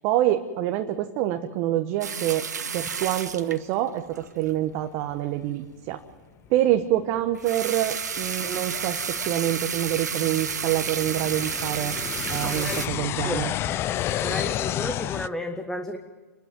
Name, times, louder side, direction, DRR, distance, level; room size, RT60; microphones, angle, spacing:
voice 1, 0.0-2.5 2.7-6.0 6.5-12.0 12.3-13.5, right 13 dB, 40° right, 7 dB, 1.3 m, -26 dB
sound 1, 2.0-4.5 7.3-12.9, right 6 dB, 85° right, 1.7 m, -31 dB
sound 2, 6.5-6.6 7.2-7.3 7.9-15.3, left 12 dB, 25° left, 0.6 m, -31 dB
voice 2, 12.4-12.8 13.3-13.4 14.2-16.0, left 1 dB, 5° left, 6 dB, 1.4 m, -32 dB
28.5 x 12.5 x 9.3 m, 1.3 s
hypercardioid pair, 120°, 9 cm